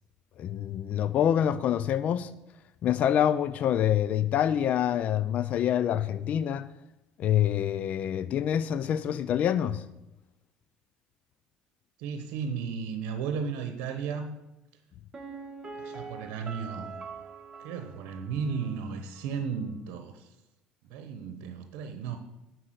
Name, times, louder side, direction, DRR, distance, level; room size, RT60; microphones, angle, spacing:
voice 1, 0.4-2.3 2.8-6.7 7.2-9.8, left 10 dB, 55° left, 0.4 m, -26 dB
voice 2, 12.0-14.4 15.7-16.9 17.6-20.3 20.9-22.2, right 6 dB, 80° right, 0.9 m, -34 dB
Piano, 15.1-18.9 19.2-19.3, right 5 dB, 25° right, 1.3 m, -43 dB
10.0 x 4.6 x 7.8 m
supercardioid pair, 90°, 3 cm